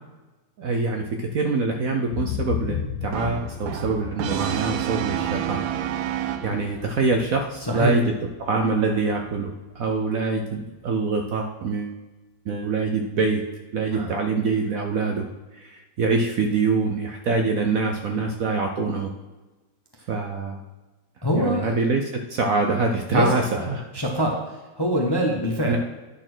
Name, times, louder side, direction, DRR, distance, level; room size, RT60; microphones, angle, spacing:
voice 1, 0.6-5.6 6.2-8.1 8.4-12.0 12.5-13.4 13.7-15.2 15.5-19.1 20.1-20.6 21.3-23.8 25.7-25.8, right 3 dB, 60° right, 3 dB, 0.9 m, -25 dB
sound 1, 2.1-10.0 10.4-10.5, left 8 dB, 70° left, 1.0 m, -35 dB
Brass instrument, 3.1-6.9, right 12 dB, 85° right, 1.3 m, -29 dB
voice 2, 21.2-21.7 23.1-23.7 23.9-24.4 24.8-25.8, equal, 20° left, 0 dB, 0.7 m, -24 dB
9.8 x 4.3 x 6.0 m, 1.1 s
omnidirectional pair, 2.0 m